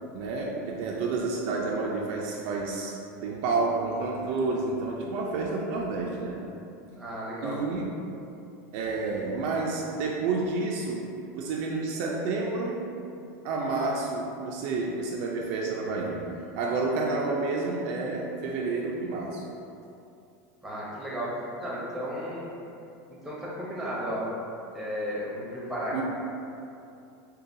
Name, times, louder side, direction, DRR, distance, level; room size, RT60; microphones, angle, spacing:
voice 1, 0.1-3.0 3.2-6.4 7.4-7.9 8.7-11.1 11.3-12.9 13.4-16.2 16.5-19.4 25.9-26.0, right 3 dB, 50° right, -2 dB, 0.4 m, -29 dB
voice 2, 6.9-7.6 20.6-22.6 23.2-24.3 24.7-26.0, equal, 5° right, -7 dB, 0.7 m, -34 dB
6.5 x 2.2 x 2.6 m, 2.7 s
supercardioid pair, 175°, 8 cm